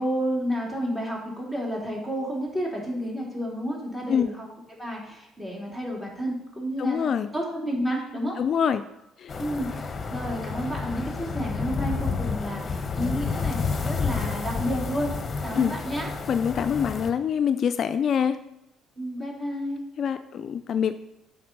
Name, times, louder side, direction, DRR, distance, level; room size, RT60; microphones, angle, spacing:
voice 1, 0.0-4.5 4.8-8.4 9.4-13.6 13.8-16.1 19.0-19.8, equal, 10° right, -3 dB, 3.3 m, -31 dB
voice 2, 6.8-7.3 8.4-8.8 9.2-9.3 15.5-15.7 16.3-18.4 20.0-21.0, left 7 dB, 55° left, 10 dB, 0.4 m, -25 dB
sound 1, 9.3-17.1, left 4 dB, 35° left, 1.0 m, -30 dB
7.7 x 5.4 x 5.3 m, 0.90 s
cardioid pair, 90°, 0 cm